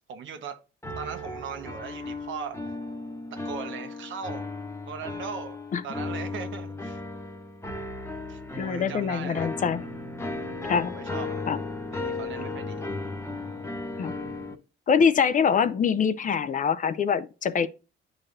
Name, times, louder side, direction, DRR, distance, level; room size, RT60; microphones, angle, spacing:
voice 1, 0.1-0.6 1.0-2.7 3.3-4.5 4.9-7.0 8.3-9.5 10.7-11.4 11.9-12.8, right 6 dB, 75° right, 1.1 m, -39 dB
sound 1, 0.8-14.6, left 2 dB, 15° left, 1.1 m, -35 dB
voice 2, 8.6-9.9 10.7-10.9 11.5-11.6 14.0-14.1 14.9-17.7, left 6 dB, 40° left, 0.5 m, -24 dB
9.6 x 3.9 x 2.6 m
cardioid pair, 90°, 20 cm